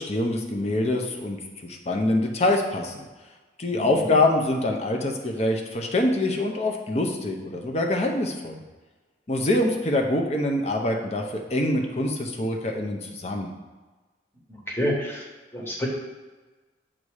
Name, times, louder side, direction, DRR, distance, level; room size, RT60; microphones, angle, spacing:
voice 1, 0.0-3.0 3.6-8.6 9.3-13.5, left 1 dB, 35° left, 2 dB, 0.6 m, -25 dB
voice 2, 3.7-4.2 14.5-15.2 15.5-15.9, equal, 15° left, -3 dB, 1.0 m, -29 dB
7.4 x 2.7 x 4.7 m, 1.3 s
head